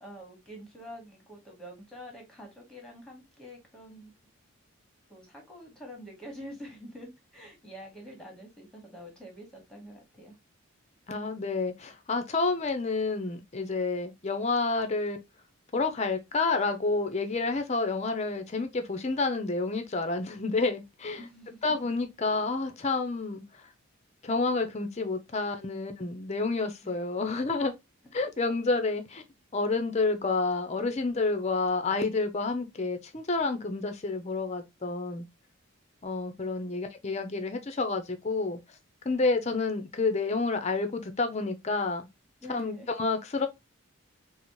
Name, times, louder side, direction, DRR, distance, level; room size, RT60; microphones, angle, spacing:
voice 1, 0.0-4.1 5.1-10.3 21.2-21.6 26.8-27.0 42.4-42.9, equal, 5° left, 1.1 m, -46 dB
voice 2, 11.1-15.2 15.7-21.2 21.6-23.6 24.2-27.7 28.1-29.2 29.5-35.3 36.0-38.6 39.0-42.1 42.5-43.5, left 3 dB, 30° left, 0.5 m, -29 dB
4.1 x 2.0 x 2.9 m
head